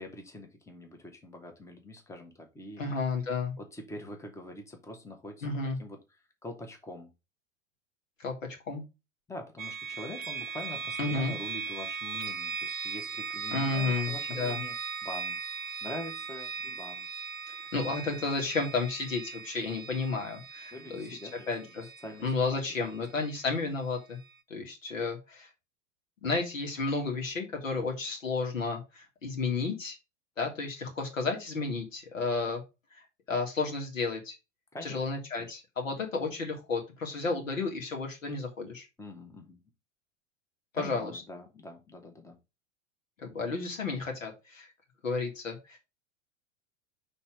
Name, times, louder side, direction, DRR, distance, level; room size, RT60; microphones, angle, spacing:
voice 1, 0.0-2.8 3.6-5.5 5.8-6.0 6.4-7.1 9.3-14.8 15.0-15.4 15.8-17.1 20.7-21.5 21.8-22.3 22.8-22.9 34.7-35.0 35.4-35.5 39.0-39.6 40.7-42.4, left 1 dB, 5° left, 4 dB, 1.2 m, -44 dB
voice 2, 2.8-3.5 5.4-5.8 8.2-8.3 8.7-8.8 11.0-11.3 13.5-14.6 17.7-21.2 21.5-21.9 22.2-24.2 24.5-25.5 26.2-30.0 30.4-32.6 33.3-34.4 34.8-38.9 40.7-41.1 43.2-44.7 45.0-45.8, left 4 dB, 75° left, 2 dB, 2.0 m, -32 dB
sound 1, 9.6-23.4, right 5 dB, 90° right, 0.5 m, -38 dB
5.7 x 3.4 x 4.8 m, 0.26 s
figure-of-eight pair, 90°, 39 cm